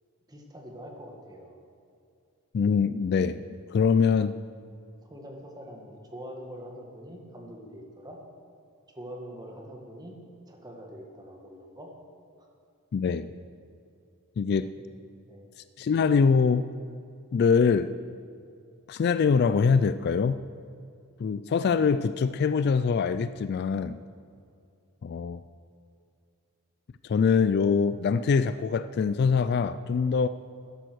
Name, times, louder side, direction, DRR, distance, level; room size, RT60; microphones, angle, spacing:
voice 1, 0.3-1.6 5.0-8.2 8.9-10.2 10.5-11.9 12.4-12.5 14.8-14.9 15.3-15.4, equal, 20° right, 1 dB, 1.7 m, -44 dB
voice 2, 2.5-3.4 3.7-4.4 12.9-13.3 14.4-14.7 15.8-16.7 17.3-17.9 18.9-20.4 21.2-24.0 25.0-25.4 27.0-30.3, left 5 dB, 45° left, 14 dB, 0.3 m, -23 dB
12.5 x 11.0 x 6.3 m, 2.4 s
head